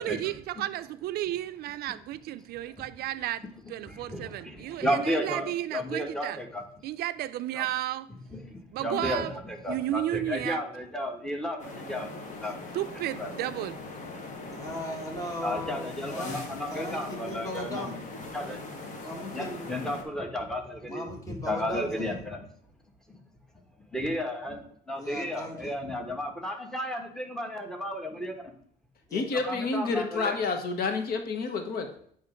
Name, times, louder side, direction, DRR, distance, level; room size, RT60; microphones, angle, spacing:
voice 1, 0.0-6.4 6.8-8.1 8.7-9.3 9.7-10.6 12.7-13.8, right 14 dB, 70° right, 0.4 m, -33 dB
voice 2, 3.9-6.6 7.5-7.7 8.3-12.1 12.4-12.5 13.2-13.3 15.4-17.9 18.3-18.6 19.3-22.4 23.9-24.6 24.9-28.5 29.4-30.4, equal, 5° left, 1.1 m, -33 dB
sound 1, 11.6-20.0, left 2 dB, 45° left, 1.3 m, -41 dB
voice 3, 14.5-16.4 16.7-18.0 19.0-19.7 20.9-22.2 25.0-25.7 29.1-29.3, left 1 dB, 20° left, 1.6 m, -38 dB
voice 4, 29.1-31.9, left 4 dB, 60° left, 1.0 m, -29 dB
8.8 x 3.0 x 5.0 m
cardioid pair, 110°, 17 cm